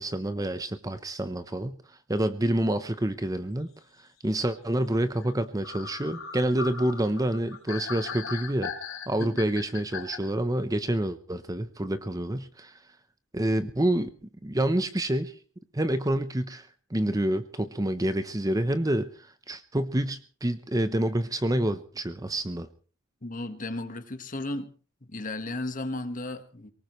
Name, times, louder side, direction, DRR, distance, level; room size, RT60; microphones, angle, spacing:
voice 1, 0.0-1.8 2.1-3.7 4.2-8.7 9.1-12.7 13.3-14.1 14.4-15.4 15.7-22.7, right 1 dB, 15° right, 11 dB, 0.8 m, -28 dB
sound 1, 5.2-5.3 5.6-10.2, left 6 dB, 80° left, 3.0 m, -38 dB
voice 2, 23.2-24.7 25.1-26.7, left 2 dB, 40° left, 9 dB, 1.5 m, -34 dB
24.0 x 19.0 x 3.1 m, 0.39 s
head